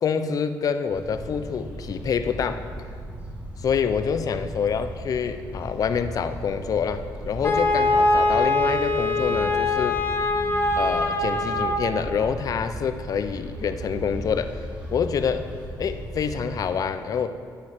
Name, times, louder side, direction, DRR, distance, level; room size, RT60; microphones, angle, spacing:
voice 1, 0.0-2.6 3.6-10.0 10.8-14.6 14.9-15.5 15.8-17.3, left 6 dB, 50° left, 10 dB, 0.6 m, -26 dB
sound 1, 0.9-16.6, right 1 dB, 15° right, 3.1 m, -37 dB
Wind instrument woodwind instrument, 7.4-12.0, left 2 dB, 30° left, 1.1 m, -23 dB
8.6 x 7.6 x 7.3 m, 2.1 s
cardioid pair, 110°, 8 cm